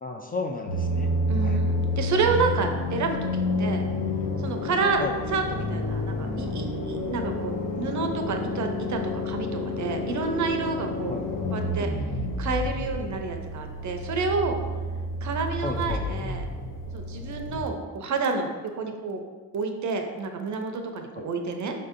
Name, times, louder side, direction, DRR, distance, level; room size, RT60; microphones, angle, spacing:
voice 1, 0.0-1.1 1.4-1.5 5.0-5.2 11.1-11.2 15.6-16.0 21.1-21.3, left 3 dB, 25° left, 2 dB, 0.3 m, -33 dB
sound 1, 0.7-17.6, left 1 dB, 55° left, 0.7 m, -29 dB
voice 2, 1.3-3.8 4.4-11.1 11.5-11.9 12.4-14.6 15.2-16.4 16.9-19.2 19.5-21.7, right 4 dB, 50° right, 5 dB, 0.6 m, -29 dB
5.3 x 2.7 x 2.5 m, 1.4 s
supercardioid pair, 60°, 38 cm